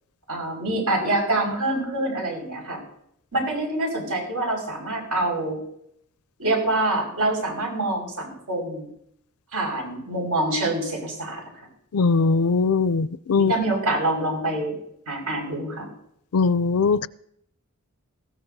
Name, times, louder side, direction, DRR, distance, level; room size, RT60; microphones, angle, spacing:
voice 1, 0.3-2.8 3.3-5.6 6.4-8.9 9.5-11.4 13.3-14.7 15.1-15.9, right 2 dB, 90° right, 0 dB, 5.5 m, -26 dB
voice 2, 11.9-13.5 16.3-17.1, left 4 dB, 80° left, 17 dB, 0.5 m, -20 dB
19.5 x 16.0 x 2.8 m, 0.73 s
head